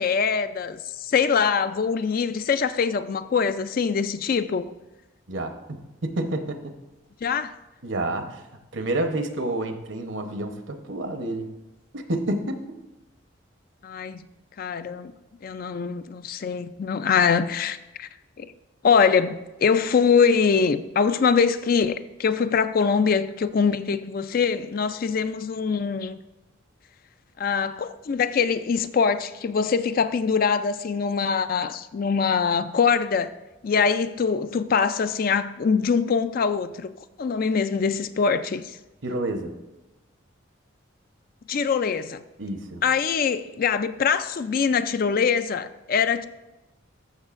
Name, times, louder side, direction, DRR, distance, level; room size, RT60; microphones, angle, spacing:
voice 1, 0.0-4.6 7.2-7.5 13.8-14.3 14.6-15.1 15.4-18.1 18.4-18.5 18.8-26.2 27.4-33.3 33.6-36.9 37.2-38.8 41.5-42.2 42.8-46.2, left 6 dB, 45° left, 0.3 m, -23 dB
voice 2, 5.3-6.8 7.8-8.4 8.7-11.5 11.9-12.6 39.0-39.5 42.4-42.8, right 1 dB, 65° right, 0.9 m, -29 dB
14.0 x 6.4 x 2.5 m
head